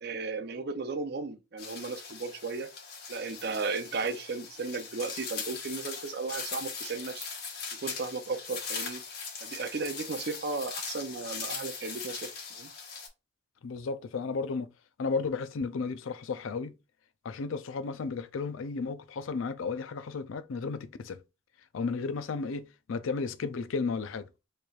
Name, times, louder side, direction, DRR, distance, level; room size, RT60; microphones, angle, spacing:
voice 1, 0.0-2.7 3.1-7.3 7.8-9.0 9.4-12.7, right 4 dB, 50° right, 0.5 m, -35 dB
sound 1, 1.6-13.1, left 5 dB, 50° left, 1.2 m, -40 dB
voice 2, 13.6-14.7 15.0-16.7 17.2-21.2 21.7-24.3, left 4 dB, 75° left, 0.4 m, -33 dB
4.4 x 3.2 x 2.3 m
head